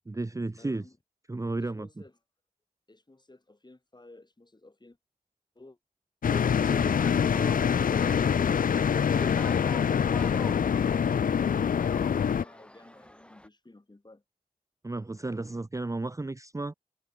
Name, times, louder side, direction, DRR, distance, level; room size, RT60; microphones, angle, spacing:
voice 1, 0.1-0.9 1.3-1.9 14.8-16.7, right 2 dB, 20° right, 0.6 m, -33 dB
voice 2, 0.6-1.0 1.6-2.2 2.9-5.0 5.6-5.8 11.4-14.2, left 2 dB, 30° left, 7.6 m, -54 dB
sound 1, 6.2-12.4, left 7 dB, 65° left, 0.4 m, -25 dB
sound 2, 6.2-13.5, equal, 5° left, 3.7 m, -44 dB
wide cardioid pair, 100°, 15 cm